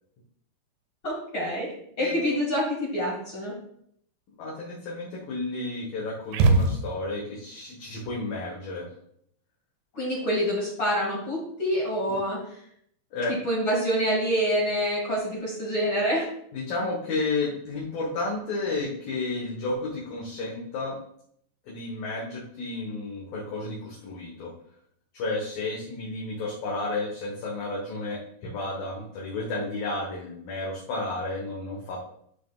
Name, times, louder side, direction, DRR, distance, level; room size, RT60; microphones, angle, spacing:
voice 1, 1.0-1.7 2.0-3.5 9.9-12.4 13.3-16.3, equal, 40° left, -5 dB, 2.0 m, -26 dB
voice 2, 2.0-2.4 4.4-8.9 12.1-12.2 13.1-13.3 16.5-21.0 21.7-24.5 25.1-32.0, left 2 dB, 60° left, -4 dB, 2.6 m, -32 dB
sound 1, 6.3-7.3, right 3 dB, 80° right, 3.0 m, -22 dB
13.5 x 5.1 x 2.4 m, 0.69 s
omnidirectional pair, 5.5 m